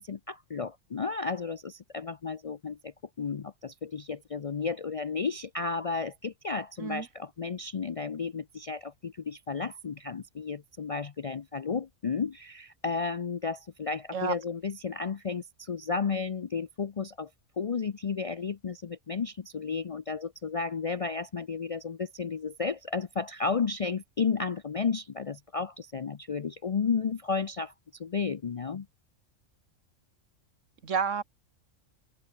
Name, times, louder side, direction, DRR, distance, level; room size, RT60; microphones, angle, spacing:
voice 1, 0.0-17.3 17.6-28.9, left 5 dB, 50° left, 0.4 m, -33 dB
voice 2, 30.8-31.2, right 6 dB, 75° right, 1.8 m, -29 dB
omnidirectional pair, 1.3 m